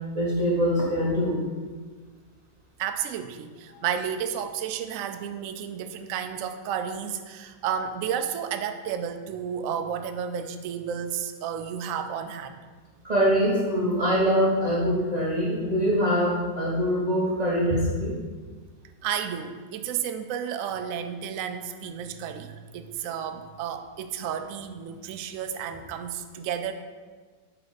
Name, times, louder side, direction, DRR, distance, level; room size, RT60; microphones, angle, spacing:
voice 1, 0.1-1.4 3.7-3.8 13.0-18.1, equal, 35° right, -5 dB, 0.7 m, -24 dB
voice 2, 2.8-12.6 19.0-26.7, right 8 dB, 85° right, 8 dB, 0.7 m, -32 dB
9.7 x 3.4 x 4.0 m, 1.4 s
omnidirectional pair, 1.9 m